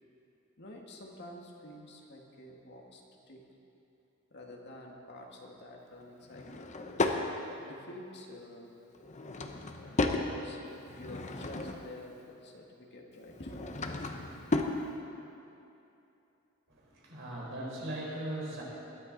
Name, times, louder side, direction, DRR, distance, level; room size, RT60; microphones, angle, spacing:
voice 1, 0.6-3.4 4.3-6.7 7.6-8.7 9.7-14.1, left 1 dB, 55° left, 0 dB, 1.9 m, -49 dB
Drawer open or close / Wood, 6.3-7.2 8.9-10.3 10.8-12.0 13.3-14.8, left 2 dB, 35° left, 0.9 m, -34 dB
voice 2, 16.7-18.6, right 1 dB, 65° right, -4 dB, 4.3 m, -39 dB
21.5 x 13.0 x 4.0 m, 2.8 s
head